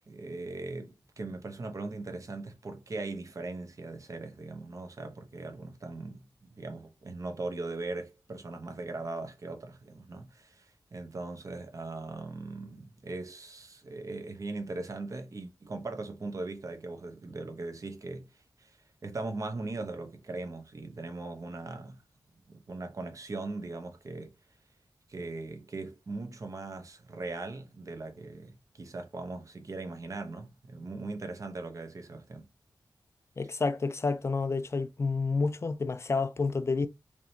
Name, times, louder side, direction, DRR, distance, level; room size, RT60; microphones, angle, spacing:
voice 1, 0.1-18.8 19.0-22.0 22.5-24.3 25.1-32.5, right 3 dB, 45° right, 0.9 m, -39 dB
voice 2, 33.4-36.9, left 4 dB, 35° left, 0.4 m, -29 dB
4.9 x 2.7 x 2.8 m
wide cardioid pair, 125°, 8 cm